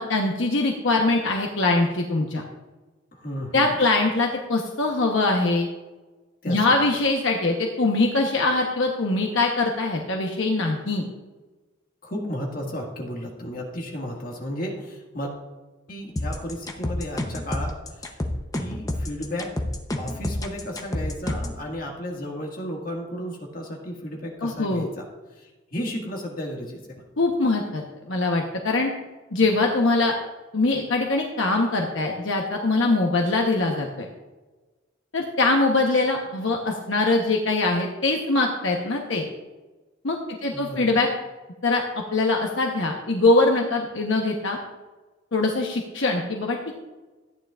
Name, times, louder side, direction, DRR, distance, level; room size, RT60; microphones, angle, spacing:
voice 1, 0.0-2.4 3.5-5.7 6.5-11.1 24.4-24.9 27.2-28.9 29.3-30.1 30.5-34.1 35.1-39.2 40.0-41.1 41.6-44.6 45.3-46.7, left 2 dB, 75° left, 1 dB, 1.0 m, -23 dB
voice 2, 3.1-3.7 6.4-6.7 12.0-15.3 15.9-17.8 18.0-18.2 18.5-19.5 20.0-25.1 25.3-26.8 40.5-41.0, equal, 45° left, -1 dB, 1.9 m, -33 dB
sound 1, 16.2-21.6, left 1 dB, 15° left, 0.8 m, -29 dB
14.0 x 9.5 x 2.5 m, 1.2 s
head